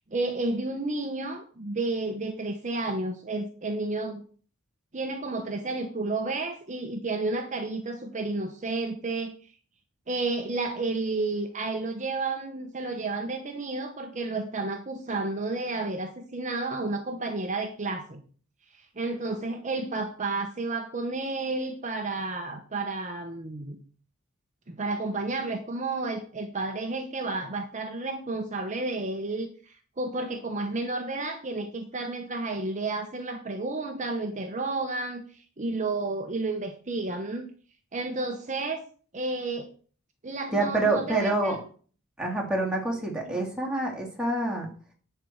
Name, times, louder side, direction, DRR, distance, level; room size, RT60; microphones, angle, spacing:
voice 1, 0.1-4.2 4.9-9.5 10.1-18.2 18.8-23.8 24.7-37.5 37.9-38.8 39.1-39.7 40.2-41.6 43.3-43.4, right 3 dB, 35° right, 5 dB, 1.0 m, -31 dB
voice 2, 40.5-41.6 42.2-44.7, right 2 dB, 5° right, -2 dB, 2.7 m, -27 dB
11.0 x 4.6 x 7.9 m, 0.43 s
head